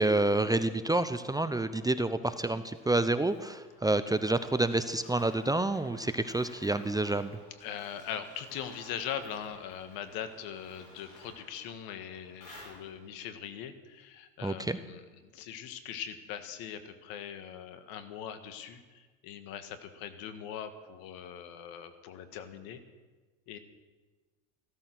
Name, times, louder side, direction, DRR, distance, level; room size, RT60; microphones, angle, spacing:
voice 1, 0.0-7.4 14.4-14.8, right 2 dB, 10° right, 11 dB, 0.8 m, -28 dB
sound 1, 2.3-13.2, left 1 dB, 80° left, 6.6 m, -55 dB
voice 2, 7.6-22.8 23.5-23.6, left 9 dB, 60° left, 9 dB, 1.9 m, -41 dB
15.5 x 13.5 x 6.2 m, 1.3 s
hypercardioid pair, 80°, 39 cm